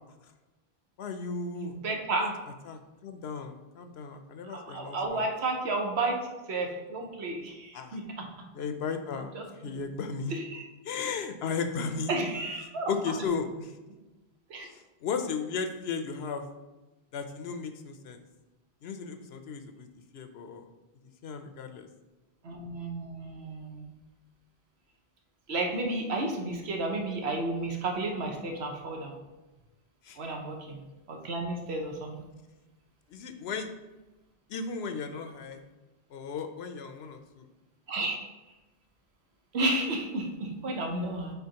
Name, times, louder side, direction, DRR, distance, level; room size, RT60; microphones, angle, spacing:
voice 1, 1.0-1.8 2.2-2.3 2.7-5.3 7.7-8.0 8.5-9.3 9.6-10.3 10.8-12.1 12.9-13.7 14.7-16.5 17.1-18.2 18.8-19.9 20.1-20.6 21.2-21.9 30.0-30.2 33.1-33.7 34.5-35.6 36.1-37.5, left 5 dB, 80° left, 8 dB, 0.9 m, -35 dB
voice 2, 1.6-2.3 4.7-6.2 6.5-8.2 9.3-9.7 10.3-10.6 12.1-12.9 14.5-14.7 22.4-23.9 25.5-29.1 30.2-30.8 31.1-32.3 37.9-38.2 39.5-41.3, right 2 dB, 80° right, 2 dB, 1.2 m, -32 dB
7.9 x 5.0 x 2.9 m, 1.1 s
omnidirectional pair, 1.1 m